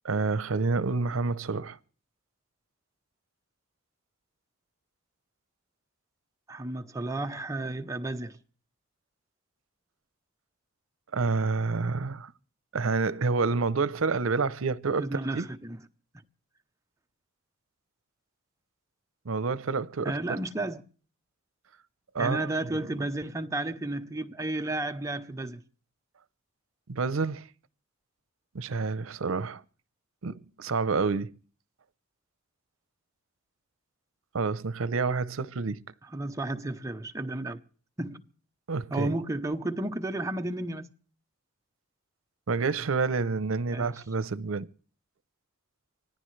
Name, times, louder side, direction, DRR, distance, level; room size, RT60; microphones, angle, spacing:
voice 1, 0.0-1.8 11.1-12.3 12.7-15.5 19.2-20.4 22.1-22.8 26.9-27.5 28.5-29.6 30.2-31.3 34.3-35.8 38.7-39.1 42.5-44.7, right 4 dB, 80° right, 0.7 m, -28 dB
voice 2, 6.5-8.4 15.0-15.8 20.0-20.8 22.2-25.6 36.1-37.6 38.0-38.3 38.9-40.9 43.7-44.0, right 2 dB, 15° right, 0.7 m, -32 dB
25.0 x 18.0 x 3.2 m
head